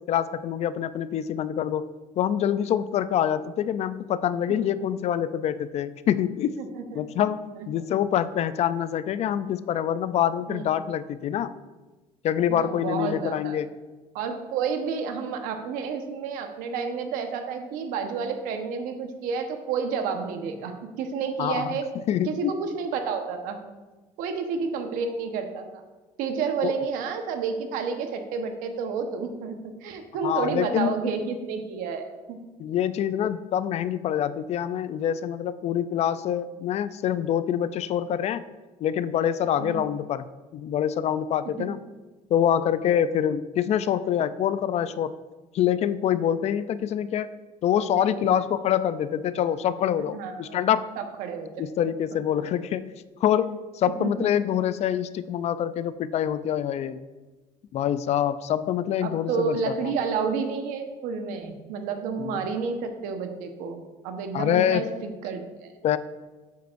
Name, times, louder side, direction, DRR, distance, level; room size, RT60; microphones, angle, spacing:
voice 1, 0.1-1.9 2.2-6.6 6.9-11.5 12.2-13.7 21.4-21.7 22.1-22.3 26.6-26.7 30.2-30.9 32.6-38.4 38.8-40.2 40.5-41.8 42.3-45.1 45.5-47.3 47.6-50.9 51.6-52.9 53.2-57.0 57.7-59.9 62.2-62.4 64.3-64.8 65.8-66.0, left 10 dB, 50° left, 14 dB, 0.4 m, -25 dB
voice 2, 4.5-4.8 6.6-7.0 7.5-7.9 10.5-10.7 12.5-13.6 14.1-21.9 22.2-23.6 24.2-25.8 26.2-32.4 39.6-39.8 47.8-48.3 50.1-50.6 51.0-51.5 51.8-51.9 52.4-52.5 53.8-54.3 59.0-65.7, right 5 dB, 80° right, 5 dB, 1.1 m, -30 dB
10.5 x 8.4 x 2.6 m, 1.2 s
cardioid pair, 110°, 14 cm